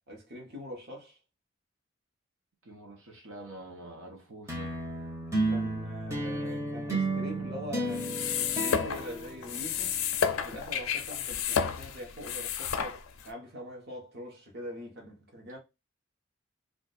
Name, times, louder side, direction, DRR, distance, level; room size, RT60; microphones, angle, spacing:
voice 1, 0.1-1.2 5.5-10.0 10.4-13.0 13.2-15.6, equal, 50° right, 1.0 m, -43 dB
voice 2, 2.6-4.8, right 1 dB, 75° right, 0.9 m, -46 dB
sound 1, 4.5-10.1, right 2 dB, 15° right, 0.7 m, -33 dB
sound 2, 7.9-13.3, left 7 dB, 90° left, 0.5 m, -31 dB
2.4 x 2.4 x 4.0 m
head